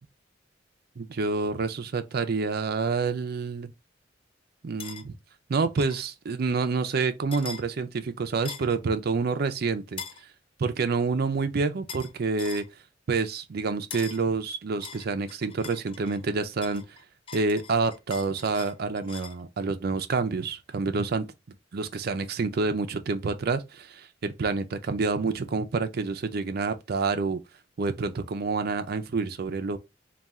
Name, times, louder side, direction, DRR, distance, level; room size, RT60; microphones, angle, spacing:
voice 1, 1.0-3.7 4.6-5.2 5.5-10.0 10.6-12.6 13.1-17.0 17.3-21.2 21.7-27.4 27.8-29.8, right 4 dB, 55° right, 0.5 m, -28 dB
sound 1, 4.8-5.0 5.8-6.0 7.3-7.6 8.5-8.8 10.0-10.2 11.9-12.1 12.4-12.7 13.9-14.2 14.8-16.2 16.6-19.4, left 6 dB, 30° left, 0.3 m, -41 dB
3.5 x 2.3 x 4.1 m
head